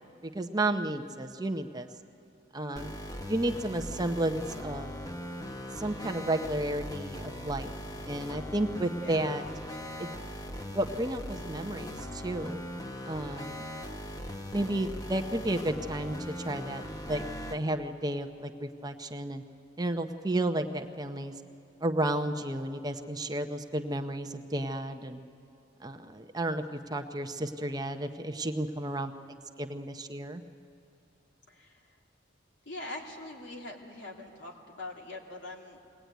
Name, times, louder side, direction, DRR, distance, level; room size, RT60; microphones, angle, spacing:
voice 1, 0.2-1.9 2.5-2.9 3.3-5.0 5.8-7.7 8.1-9.4 10.0-10.1 10.7-12.6 13.1-13.8 14.5-19.4 19.8-21.3 21.8-25.2 25.8-30.4, right 1 dB, 20° right, 7 dB, 0.7 m, -32 dB
sound 1, 2.8-17.6, equal, 20° left, 1.0 m, -40 dB
voice 2, 31.5-32.0 32.6-35.8, left 2 dB, 70° left, -1 dB, 2.9 m, -43 dB
22.5 x 19.0 x 9.2 m, 2.7 s
head